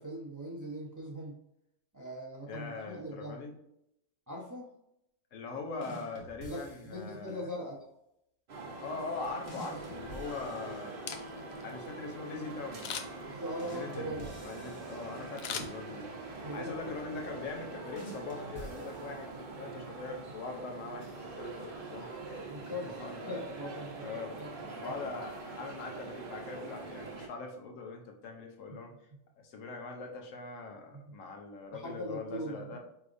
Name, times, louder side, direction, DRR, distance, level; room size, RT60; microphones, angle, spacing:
voice 1, 0.0-1.4 1.9-3.4 4.3-4.7 6.4-7.7 13.2-14.3 16.4-16.7 22.5-22.9 23.3-24.1 24.4-24.5 24.8-24.9 28.7-28.8 30.9-31.1 31.7-32.8, equal, 20° right, -2 dB, 0.6 m, -40 dB
voice 2, 2.5-3.5 5.3-7.4 8.8-10.9 11.6-13.2 13.6-23.4 24.0-24.4 24.7-28.9 29.4-32.8, left 3 dB, 85° left, 3 dB, 1.1 m, -42 dB
sound 1, 5.8-7.2 9.5-11.4 13.6-15.7 18.0-19.6, equal, 30° left, 0.9 m, -50 dB
sound 2, 8.5-27.3, right 3 dB, 50° right, 0.9 m, -44 dB
Camera, 10.9-11.6 12.8-13.3 15.4-16.3 16.7-16.8, left 7 dB, 65° left, 0.7 m, -40 dB
4.7 x 3.4 x 2.5 m, 0.79 s
omnidirectional pair, 1.3 m